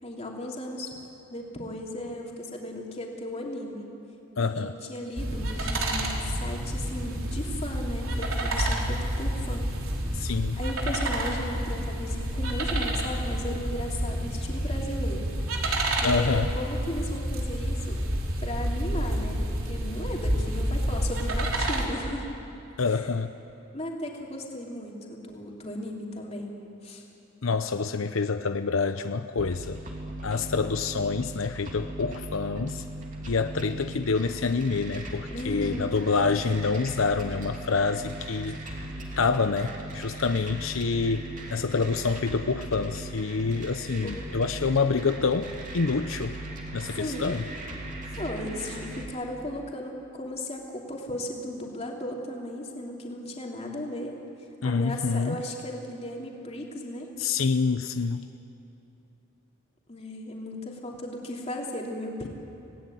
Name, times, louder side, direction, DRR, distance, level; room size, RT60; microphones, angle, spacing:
voice 1, 0.0-0.9 1.3-3.9 4.4-9.7 10.5-15.3 16.0-16.3 16.6-18.0 18.4-22.3 22.9-23.0 23.7-26.6 26.8-27.0 35.3-36.0 44.0-44.3 46.9-47.3 48.2-54.1 54.6-57.1 59.9-62.3, left 1 dB, 30° left, -1 dB, 3.2 m, -36 dB
voice 2, 4.4-4.7 10.1-10.6 16.0-16.5 22.8-23.3 27.4-29.8 30.2-32.8 33.3-38.6 39.2-46.4 46.7-47.4 54.6-55.4 57.2-58.3, left 4 dB, 80° left, 9 dB, 0.7 m, -27 dB
sound 1, 5.2-21.9, right 1 dB, 90° right, 3.4 m, -29 dB
sound 2, 29.4-49.0, right 1 dB, 40° right, 3.0 m, -38 dB
26.5 x 17.5 x 9.3 m, 2.8 s
head